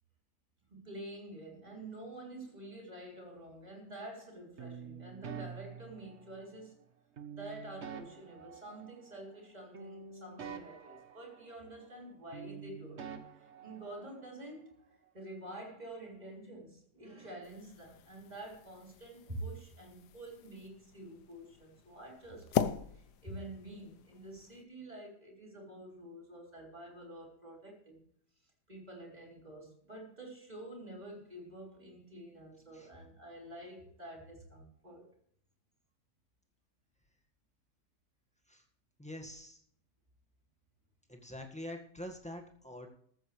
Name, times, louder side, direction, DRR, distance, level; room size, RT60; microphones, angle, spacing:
voice 1, 0.7-6.8 7.3-13.1 13.4-14.8 15.1-28.1 28.4-35.1, right 1 dB, 25° right, -1 dB, 3.6 m, -48 dB
sound 1, 4.6-6.6 7.2-9.5 9.7-12.1 12.3-14.4, right 6 dB, 45° right, 1.3 m, -48 dB
sound 2, 17.4-24.6, left 9 dB, 85° left, 1.4 m, -41 dB
voice 2, 39.0-39.6 41.1-42.9, left 1 dB, 5° left, 2 dB, 1.6 m, -45 dB
14.0 x 13.5 x 3.3 m, 0.64 s
omnidirectional pair, 1.7 m